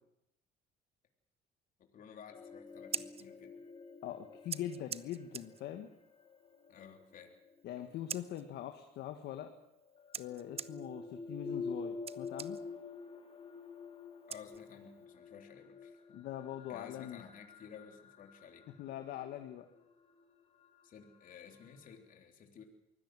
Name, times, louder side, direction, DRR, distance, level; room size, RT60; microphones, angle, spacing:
voice 1, 1.8-3.6 6.7-7.3 7.8-7.9 14.3-16.0 16.7-18.6 20.8-22.6, left 7 dB, 55° left, 4 dB, 3.5 m, -54 dB
sound 1, 2.3-8.3 9.5-21.9, left 4 dB, 35° left, 2.3 m, -48 dB
Scissors, 2.7-15.1, right 7 dB, 35° right, 0.8 m, -48 dB
voice 2, 4.0-5.9 7.6-9.5 10.2-12.6 16.1-17.2 18.8-19.7, left 11 dB, 75° left, 6 dB, 1.7 m, -42 dB
23.5 x 17.0 x 7.7 m, 0.80 s
cardioid pair, 110°, 17 cm